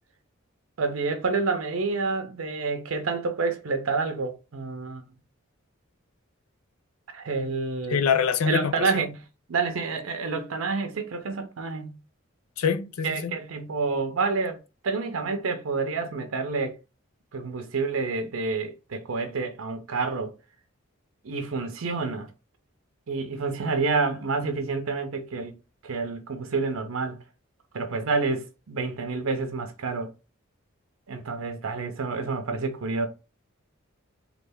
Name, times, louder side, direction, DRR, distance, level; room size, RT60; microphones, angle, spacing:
voice 1, 0.8-5.0 7.1-8.1 8.4-9.2 9.5-12.0 13.0-14.6 14.8-16.8 17.3-20.3 21.2-22.3 23.1-25.6 25.8-27.2 27.7-30.1 31.1-33.1, right 4 dB, 75° right, 0.6 m, -28 dB
voice 2, 7.9-9.0 12.6-13.3, left 6 dB, 90° left, 0.5 m, -25 dB
3.2 x 2.4 x 3.4 m
head